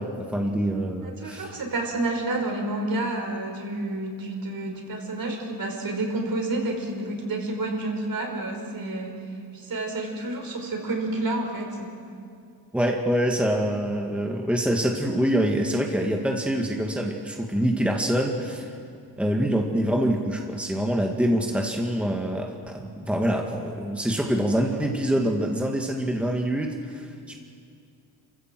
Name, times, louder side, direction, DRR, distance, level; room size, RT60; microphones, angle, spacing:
voice 1, 0.0-1.6 12.7-18.8 19.2-27.3, equal, 5° right, 1 dB, 2.1 m, -25 dB
voice 2, 1.0-9.2 9.5-11.9, right 2 dB, 50° right, 2 dB, 5.3 m, -29 dB
27.0 x 15.5 x 7.8 m, 2.4 s
cardioid pair, 80°, 44 cm